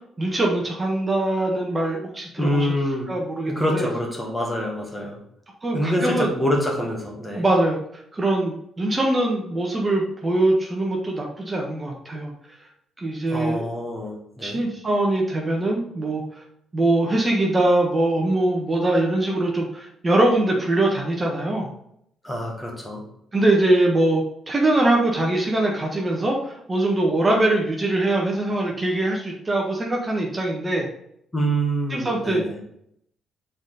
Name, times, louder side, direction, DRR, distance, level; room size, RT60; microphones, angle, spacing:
voice 1, 0.2-2.7 3.1-3.9 5.6-6.3 7.3-7.8 8.1-12.3 13.0-13.6 14.4-16.4 16.7-21.7 23.3-30.9 31.9-32.4, right 2 dB, 25° right, -1 dB, 1.2 m, -22 dB
voice 2, 2.4-3.1 3.5-5.2 5.7-7.5 13.3-14.6 22.2-23.0 31.3-32.6, equal, 15° left, 0 dB, 1.8 m, -26 dB
6.0 x 4.2 x 4.0 m, 0.74 s
cardioid pair, 90°, 0 cm